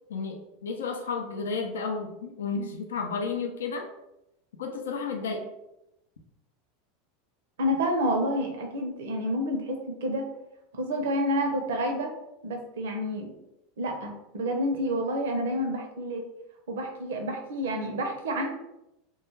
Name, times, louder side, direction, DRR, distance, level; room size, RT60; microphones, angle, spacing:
voice 1, 0.1-3.8 4.6-5.5, left 4 dB, 85° left, 3 dB, 0.4 m, -32 dB
voice 2, 7.6-10.3 10.7-12.1 12.4-13.3 13.8-16.2 16.7-18.5, equal, 80° right, 3 dB, 0.6 m, -29 dB
2.2 x 2.2 x 3.1 m, 0.87 s
hypercardioid pair, 105°, 0 cm